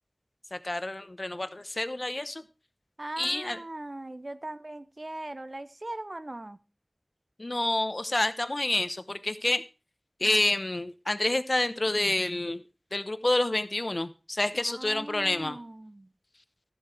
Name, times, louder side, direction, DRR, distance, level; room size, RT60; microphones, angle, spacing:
voice 1, 0.5-2.4 3.2-3.6 7.4-9.6 10.2-12.6 12.9-15.6, left 2 dB, 60° left, 11 dB, 0.9 m, -28 dB
voice 2, 3.0-6.6 14.6-16.1, right 1 dB, 55° right, 12 dB, 0.8 m, -40 dB
13.5 x 7.5 x 4.5 m, 0.31 s
wide cardioid pair, 45°, 0 cm